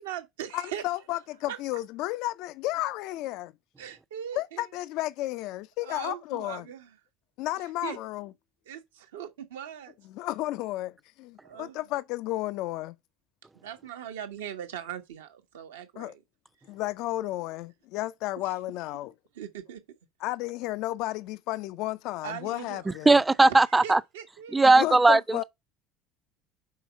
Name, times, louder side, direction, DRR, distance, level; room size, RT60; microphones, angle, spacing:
voice 1, 0.0-0.8 1.5-1.6 3.8-4.7 5.8-6.9 7.8-8.0 8.7-9.9 11.4-11.8 13.5-16.2 18.4-18.5 19.3-19.8 22.2-23.0 23.7-24.6, right 9 dB, 75° right, 1.0 m, -40 dB
voice 2, 0.5-3.5 4.3-6.7 7.4-8.3 10.1-13.0 16.0-16.1 16.7-19.1 20.2-23.2 24.6-25.4, left 16 dB, 60° left, 0.3 m, -32 dB
voice 3, 22.9-24.0 24.5-25.4, right 3 dB, 15° right, 0.5 m, -19 dB
5.6 x 4.2 x 5.6 m
figure-of-eight pair, 65°, 0 cm